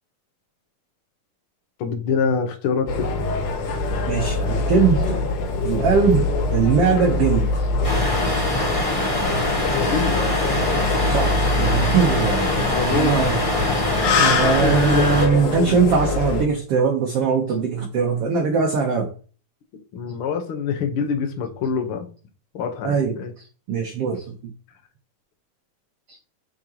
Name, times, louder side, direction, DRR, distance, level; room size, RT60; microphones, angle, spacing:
voice 1, 1.8-3.1 9.7-10.1 12.7-13.1 14.3-15.1 15.6-15.8 19.9-22.1 22.5-23.3, left 6 dB, 70° left, 1.2 m, -25 dB
sound 1, 2.9-16.5, left 3 dB, 90° left, 3.2 m, -24 dB
voice 2, 4.1-5.1 5.6-7.6 11.0-13.4 14.2-19.1 22.8-24.5 26.1-26.2, right 5 dB, 75° right, 1.3 m, -21 dB
sound 2, 7.8-15.3, left 1 dB, 55° left, 0.3 m, -24 dB
8.6 x 4.8 x 3.0 m
omnidirectional pair, 4.0 m